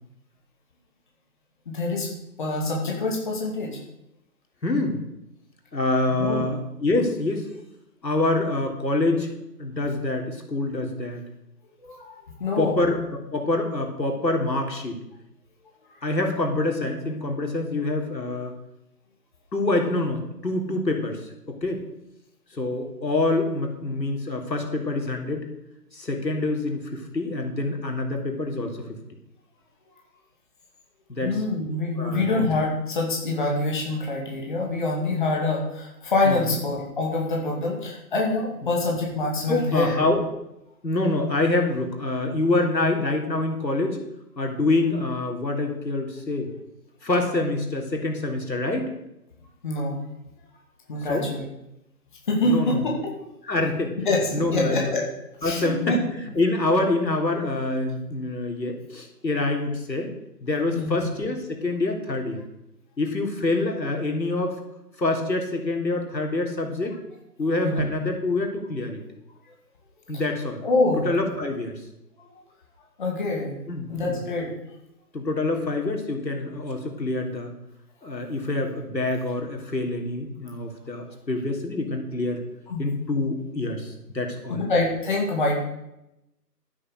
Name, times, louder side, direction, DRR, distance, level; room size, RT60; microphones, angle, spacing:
voice 1, 1.7-2.1 2.4-3.8 6.2-6.4 11.8-12.8 31.2-40.0 49.6-50.0 50.9-51.5 52.3-53.0 54.1-54.2 54.5-55.0 55.4-56.0 60.7-61.0 67.6-67.9 70.6-71.1 72.2-72.3 73.0-73.6 73.9-74.5 82.7-82.8 84.5-85.6, left 2 dB, 30° left, -1 dB, 2.5 m, -25 dB
voice 2, 4.6-5.0 5.7-7.5 8.0-9.3 9.6-11.2 12.6-13.0 13.3-15.0 16.0-18.6 19.5-21.2 21.5-21.8 22.5-25.4 25.9-28.8 31.1-31.4 32.0-32.5 36.3-36.6 39.5-40.2 40.8-44.0 44.4-46.5 47.0-48.9 51.1-51.3 52.4-52.9 53.4-53.9 54.3-54.9 55.4-60.1 60.4-62.4 63.0-64.6 65.0-67.0 67.4-69.0 70.1-70.6 71.1-71.8 73.7-74.2 75.1-77.5 78.0-82.4 82.8-84.6, left 2 dB, 85° left, 2 dB, 3.6 m, -26 dB
12.5 x 9.9 x 6.6 m, 0.87 s
figure-of-eight pair, 165°, 50 cm